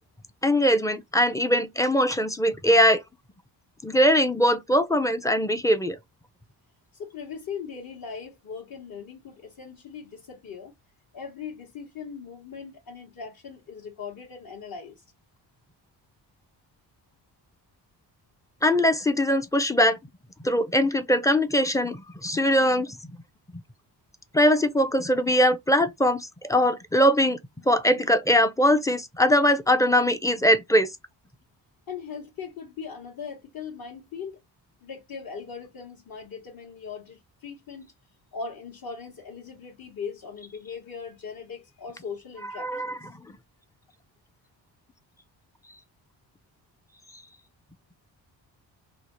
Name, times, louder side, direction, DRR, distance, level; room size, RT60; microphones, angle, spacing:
voice 1, 0.4-3.0 3.8-6.0 18.6-20.0 20.4-22.9 24.3-27.4 27.7-30.9 42.6-42.9, equal, 10° left, 0.4 m, -21 dB
voice 2, 6.9-10.7 11.1-15.0 31.9-34.4 34.8-37.9 38.3-43.1, left 6 dB, 50° left, 1.0 m, -39 dB
2.8 x 2.1 x 2.9 m
cardioid pair, 60°, 46 cm